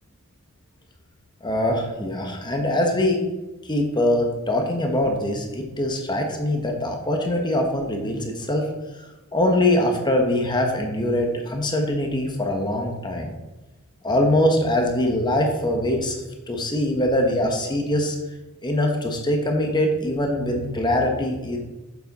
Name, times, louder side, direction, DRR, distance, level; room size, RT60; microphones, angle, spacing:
voice 1, 1.4-3.2 3.6-8.7 9.3-13.3 14.0-18.2 18.6-21.6, left 1 dB, 20° left, 2 dB, 1.1 m, -23 dB
8.2 x 7.2 x 4.1 m, 1.1 s
head